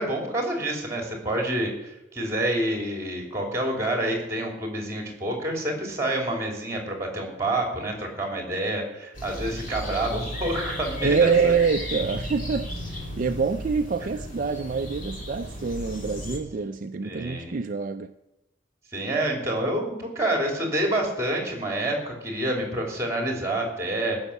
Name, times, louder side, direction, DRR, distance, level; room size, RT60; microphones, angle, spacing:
voice 1, 0.0-11.5 17.0-17.5 18.9-24.2, right 1 dB, 15° right, 2.9 m, -28 dB
sound 1, 9.1-16.4, equal, 40° left, 2.7 m, -35 dB
voice 2, 11.0-18.1, right 5 dB, 45° right, 0.4 m, -26 dB
14.5 x 6.3 x 8.2 m
head